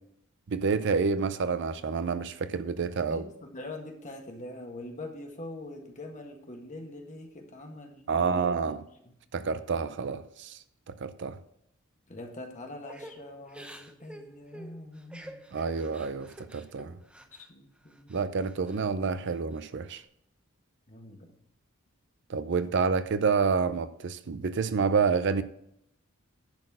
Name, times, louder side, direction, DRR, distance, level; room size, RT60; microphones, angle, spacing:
voice 1, 0.5-3.2 8.1-8.8 9.3-10.6 10.9-11.4 15.5-17.0 18.1-20.0 22.3-25.4, right 5 dB, 55° right, 13 dB, 0.5 m, -28 dB
voice 2, 3.1-8.8 12.1-15.5 17.5-18.5 20.9-21.3, left 1 dB, 35° left, 3 dB, 1.5 m, -44 dB
Crying sobbing / Breathing, 12.9-17.5 17.9-18.8 19.2-20.0, right 1 dB, 5° right, 0.7 m, -49 dB
10.5 x 4.3 x 7.7 m, 0.73 s
head